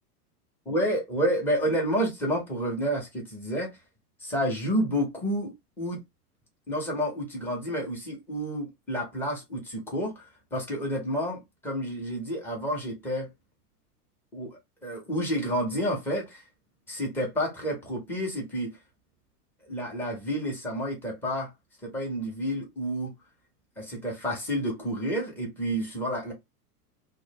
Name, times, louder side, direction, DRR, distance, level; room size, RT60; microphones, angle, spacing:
voice 1, 0.7-3.8 4.2-6.0 6.7-13.3 14.3-16.4 16.9-18.7 19.7-21.5 21.8-23.1 23.8-26.3, equal, 5° left, 0.4 m, -30 dB
2.0 x 2.0 x 3.2 m
hypercardioid pair, 125°, 48 cm